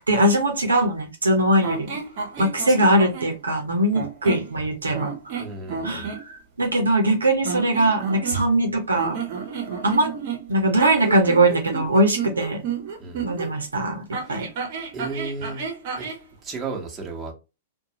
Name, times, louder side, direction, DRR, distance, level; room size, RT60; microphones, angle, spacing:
voice 1, 0.1-2.0 2.4-5.4 5.8-9.2 9.8-10.1 10.5-12.6 13.2-14.5, right 1 dB, 85° right, 0.7 m, -21 dB
sound 1, 1.6-3.3 3.9-4.5 4.9-6.2 7.4-8.6 8.9-13.5 14.1-16.2, right 6 dB, 50° right, 0.9 m, -31 dB
voice 2, 2.4-2.7 5.4-6.1 13.0-13.3 14.2-14.4 14.9-15.7 15.9-16.0 16.4-17.3, right 3 dB, 20° right, 1.1 m, -34 dB
2.5 x 2.3 x 2.8 m
hypercardioid pair, 110°, 0 cm